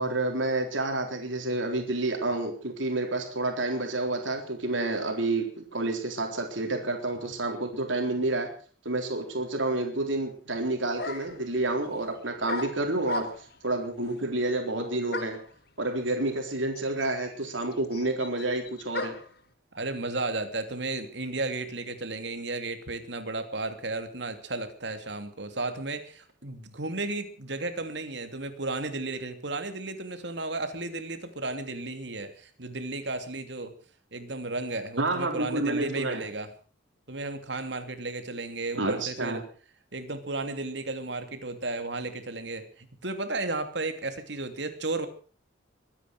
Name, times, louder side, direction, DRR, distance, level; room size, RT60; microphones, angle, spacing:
voice 1, 0.0-8.5 8.8-13.3 13.6-15.4 15.8-19.1 35.0-36.2 38.7-39.4, right 2 dB, 85° right, 3 dB, 3.9 m, -29 dB
sound 1, 10.5-10.6 11.0-11.4 12.5-13.6 15.1-15.5 16.4-16.5 16.7-19.4, left 2 dB, 55° left, 1.7 m, -36 dB
voice 2, 19.7-33.7 34.1-36.5 37.1-39.4 39.9-45.1, right 2 dB, 65° right, 8 dB, 2.8 m, -34 dB
23.0 x 10.0 x 6.0 m, 0.41 s
head